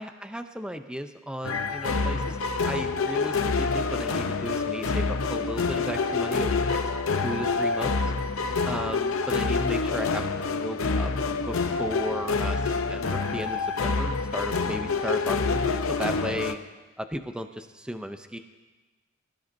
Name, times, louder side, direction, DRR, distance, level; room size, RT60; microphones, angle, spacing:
voice 1, 0.0-6.8 7.2-8.0 8.7-11.1 11.5-12.6 12.9-16.6 17.0-18.4, equal, 5° right, 8 dB, 0.5 m, -35 dB
sound 1, 1.4-16.6, left 4 dB, 75° left, 0.7 m, -27 dB
22.0 x 13.0 x 2.6 m, 1.2 s
head